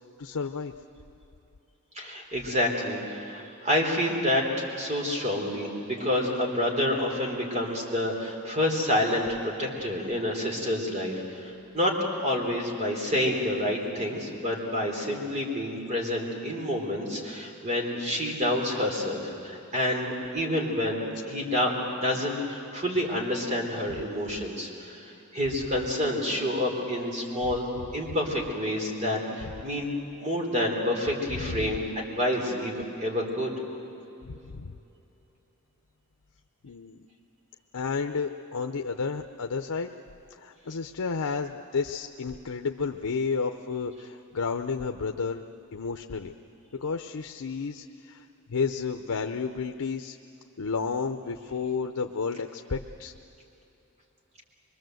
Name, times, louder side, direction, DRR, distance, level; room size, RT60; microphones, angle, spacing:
voice 1, 0.2-0.7 31.3-31.8 34.2-34.7 36.6-37.0 37.7-39.9 40.4-45.4 45.7-46.3 46.7-50.2 50.6-53.1, left 5 dB, 85° left, 5 dB, 0.7 m, -31 dB
voice 2, 2.0-21.7 22.0-27.7 27.9-29.9 30.2-33.5, left 1 dB, 30° right, 0 dB, 3.6 m, -28 dB
24.0 x 23.0 x 7.8 m, 3.0 s
head